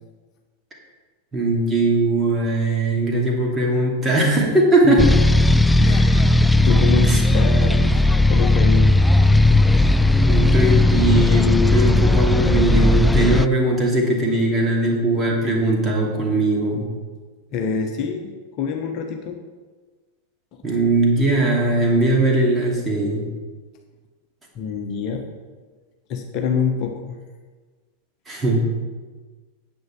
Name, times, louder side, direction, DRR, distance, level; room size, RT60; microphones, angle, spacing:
voice 1, 1.3-5.0 7.0-7.2 10.1-16.8 20.6-23.3 28.3-28.6, right 2 dB, 15° right, -2 dB, 2.7 m, -20 dB
voice 2, 4.8-5.2 5.8-7.9 8.2-9.0 9.5-9.6 17.5-18.3 18.6-19.4 24.5-25.2 26.1-27.2, left 6 dB, 40° left, 3 dB, 1.0 m, -26 dB
sound 1, 5.0-13.5, left 2 dB, 5° left, 0.3 m, -16 dB
9.4 x 8.1 x 4.7 m, 1.4 s
figure-of-eight pair, 90°, 0 cm